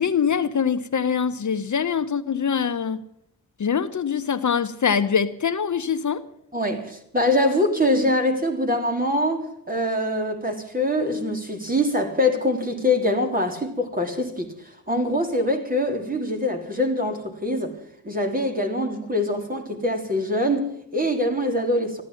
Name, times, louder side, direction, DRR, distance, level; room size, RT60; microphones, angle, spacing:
voice 1, 0.0-3.0 3.6-6.2, left 7 dB, 55° left, 11 dB, 0.9 m, -23 dB
voice 2, 6.5-14.5 14.9-17.8 18.0-22.0, left 1 dB, 25° right, 3 dB, 3.4 m, -24 dB
14.5 x 12.5 x 7.7 m, 0.71 s
cardioid pair, 75°, 35 cm